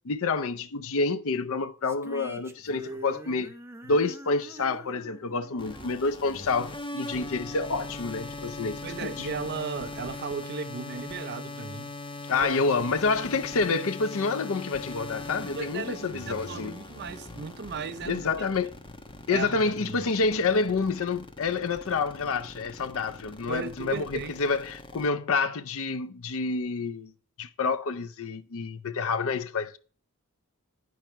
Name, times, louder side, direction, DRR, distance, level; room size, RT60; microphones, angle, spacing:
voice 1, 0.0-3.5 3.9-9.3 12.3-16.7 18.1-18.7 19.3-27.1 27.4-29.8, left 4 dB, 65° left, 0.6 m, -28 dB
sound 1, 1.8-7.2, right 1 dB, 10° right, 0.7 m, -45 dB
sound 2, 5.6-25.1, left 2 dB, 25° left, 1.1 m, -40 dB
voice 2, 8.8-11.9 12.4-12.6 15.6-18.2 19.3-20.1 23.5-24.4, right 5 dB, 50° right, 0.5 m, -36 dB
10.5 x 4.8 x 4.4 m
head